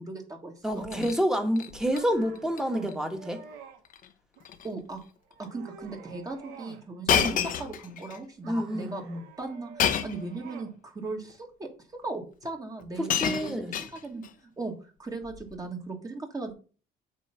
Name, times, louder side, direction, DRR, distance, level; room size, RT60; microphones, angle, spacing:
voice 1, 0.0-1.1 2.7-2.9 4.6-5.0 5.4-13.5 13.8-14.7 15.0-16.5, right 3 dB, 20° right, 1.7 m, -38 dB
voice 2, 0.6-3.4 7.1-7.4 8.4-8.9 13.0-13.7, equal, 5° right, 1.4 m, -28 dB
Shatter, 0.7-1.2 1.6-2.0 2.4-2.6 2.9-3.0 3.9-4.1 4.4-4.7 5.4-5.5 7.1-8.2 9.8-10.3 11.3-11.4 12.4-12.5 12.8-14.3 15.3-15.5, left 8 dB, 55° left, 0.9 m, -29 dB
sound 1, 1.9-3.8 4.4-4.9 5.3-6.9 7.2-7.9 8.4-10.8, right 6 dB, 90° right, 1.2 m, -50 dB
8.2 x 3.2 x 5.6 m
cardioid pair, 110°, 17 cm